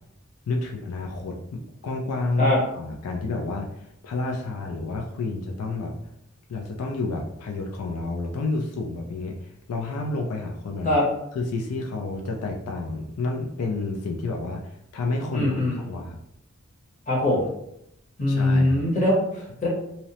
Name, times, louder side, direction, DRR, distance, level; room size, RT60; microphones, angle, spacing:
voice 1, 0.5-5.9 6.5-10.9 11.3-16.2 18.3-18.8, left 3 dB, 85° left, 1 dB, 0.4 m, -30 dB
voice 2, 15.3-15.8 17.1-17.5 18.2-19.7, left 1 dB, 30° left, -5 dB, 0.8 m, -22 dB
2.8 x 2.0 x 2.8 m, 0.79 s
head